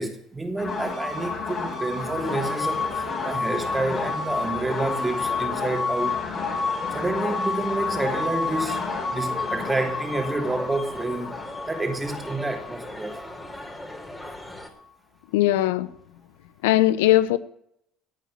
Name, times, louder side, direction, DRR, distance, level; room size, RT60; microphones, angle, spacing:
voice 1, 0.0-6.2 6.9-13.2, right 2 dB, 15° right, 3.2 m, -29 dB
sound 1, 0.6-14.2, left 4 dB, 40° left, 6.1 m, -30 dB
sound 2, 2.2-14.7, left 1 dB, 10° left, 3.8 m, -39 dB
voice 2, 15.3-15.9 16.6-17.4, left 15 dB, 85° left, 1.0 m, -19 dB
16.5 x 8.8 x 8.7 m
supercardioid pair, 80°, 0 cm